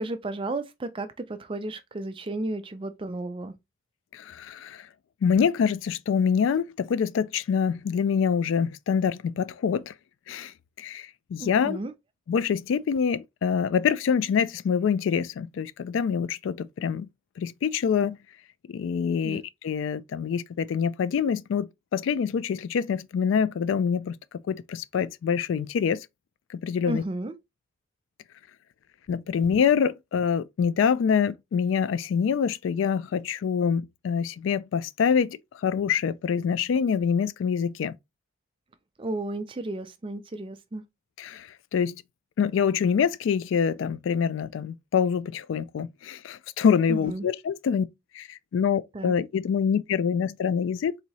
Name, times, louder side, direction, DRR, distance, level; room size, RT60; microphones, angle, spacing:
voice 1, 0.0-3.5 11.4-11.9 19.2-19.4 26.9-27.3 39.0-40.8 46.9-47.2 48.9-49.1, right 2 dB, 25° right, 0.4 m, -33 dB
voice 2, 4.1-4.9 5.2-9.9 10.3-11.8 12.3-17.1 17.4-18.2 18.7-24.1 24.5-26.1 26.5-27.0 29.1-37.9 41.2-42.0 42.4-47.9 48.1-51.0, left 7 dB, 75° left, 0.3 m, -25 dB
4.0 x 2.7 x 2.9 m
head